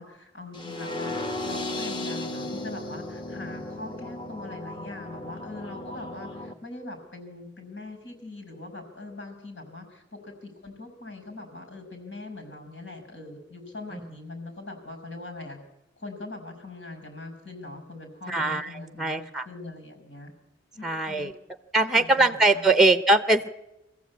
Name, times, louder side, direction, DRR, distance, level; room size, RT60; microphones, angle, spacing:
voice 1, 0.0-15.6 16.0-20.3 20.7-21.3 21.8-22.7, left 2 dB, 80° left, 5 dB, 5.9 m, -42 dB
sound 1, 0.5-6.5, left 2 dB, 25° left, 1.6 m, -35 dB
voice 2, 18.3-19.5 20.8-21.3 21.7-23.5, right 2 dB, 5° right, 12 dB, 0.7 m, -22 dB
23.5 x 15.0 x 8.5 m, 0.97 s
head